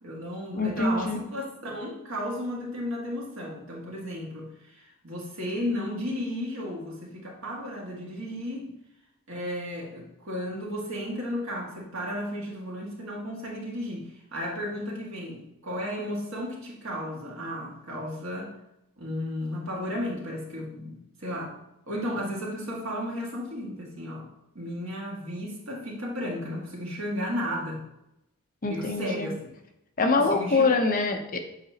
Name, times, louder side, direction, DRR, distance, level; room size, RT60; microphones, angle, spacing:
voice 1, 0.0-8.7 9.3-18.5 19.0-21.6 21.9-24.2 24.6-27.8 28.7-29.3 30.1-30.6, equal, 65° right, -3 dB, 1.8 m, -34 dB
voice 2, 0.6-1.2 28.6-29.3 30.0-31.4, left 3 dB, 40° left, 4 dB, 0.7 m, -24 dB
8.0 x 4.9 x 2.8 m, 0.86 s
head